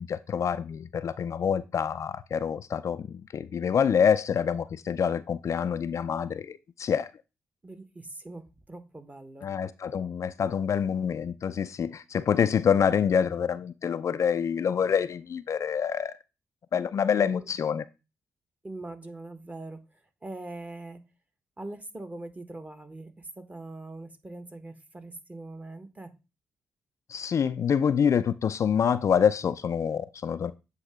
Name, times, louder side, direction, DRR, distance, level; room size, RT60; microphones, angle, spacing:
voice 1, 0.0-7.1 9.4-16.1 16.7-17.8 27.1-30.5, left 7 dB, 55° left, 0.4 m, -26 dB
voice 2, 7.6-9.5 17.2-17.5 18.6-21.0 21.6-26.1, right 2 dB, 25° right, 1.3 m, -42 dB
8.0 x 2.9 x 4.8 m
hypercardioid pair, 45°, 6 cm